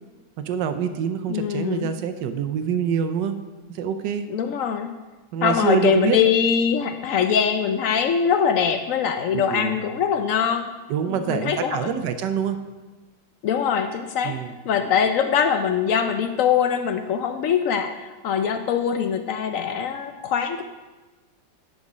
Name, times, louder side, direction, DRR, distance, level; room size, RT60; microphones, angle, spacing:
voice 1, 0.4-3.4 3.7-4.3 5.3-6.2 9.3-9.8 10.9-12.6 14.2-14.6, right 7 dB, 85° right, 8 dB, 1.3 m, -25 dB
voice 2, 1.3-1.9 4.3-4.9 5.4-10.7 11.1-11.9 13.4-14.4 14.6-20.6, left 7 dB, 75° left, 7 dB, 0.7 m, -22 dB
10.5 x 5.3 x 4.9 m, 1.2 s
omnidirectional pair, 1.9 m